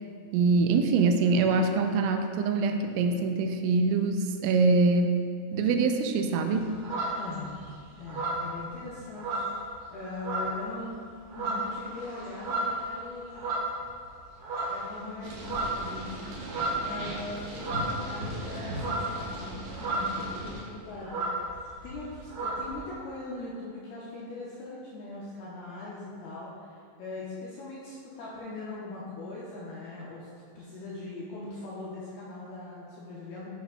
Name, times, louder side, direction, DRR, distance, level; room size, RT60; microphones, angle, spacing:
voice 1, 0.3-5.2 5.5-6.8, right 4 dB, 85° right, 5 dB, 3.1 m, -24 dB
sound 1, 6.5-7.6 8.0-9.9 10.2-10.7 11.1-14.1 14.4-15.0 15.2-20.3 20.6-20.7 20.9-22.8, right 2 dB, 50° right, 1.9 m, -33 dB
voice 2, 7.1-11.0 11.4-13.5 14.7-16.2 16.8-30.3 30.6-33.5, left 2 dB, 80° left, -7 dB, 2.3 m, -41 dB
sound 2, 15.2-20.6, right 1 dB, 70° right, 3.5 m, -38 dB
9.2 x 8.0 x 2.2 m, 2.2 s
omnidirectional pair, 5.4 m